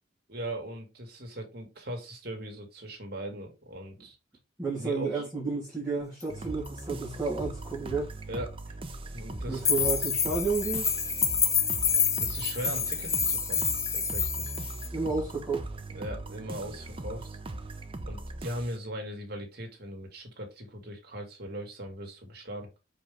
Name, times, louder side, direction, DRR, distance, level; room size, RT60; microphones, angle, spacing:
voice 1, 0.3-4.2 4.7-5.2 8.3-8.8 9.1-9.7 12.2-13.6 13.9-14.5 15.9-17.4 18.0-22.7, right 1 dB, 55° right, 2.3 m, -39 dB
voice 2, 4.6-8.1 9.5-10.8 14.9-15.7, right 4 dB, 5° right, 3.1 m, -31 dB
sound 1, 6.2-6.3 6.6-6.7 9.6-14.9, left 6 dB, 15° left, 0.6 m, -28 dB
sound 2, 6.3-18.8, right 2 dB, 25° right, 0.6 m, -39 dB
5.4 x 5.2 x 3.5 m
head